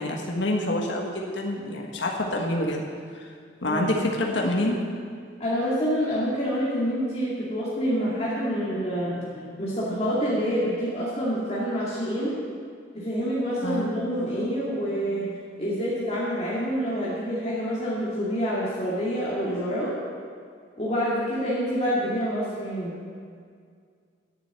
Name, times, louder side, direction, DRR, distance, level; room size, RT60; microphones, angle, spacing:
voice 1, 0.0-2.9 3.1-3.2 3.6-4.8 13.6-13.9, left 1 dB, 75° left, 0 dB, 1.5 m, -27 dB
voice 2, 5.4-12.3 12.9-19.9 20.8-23.0, equal, 35° left, -8 dB, 2.2 m, -27 dB
11.0 x 7.6 x 8.1 m, 2.1 s
head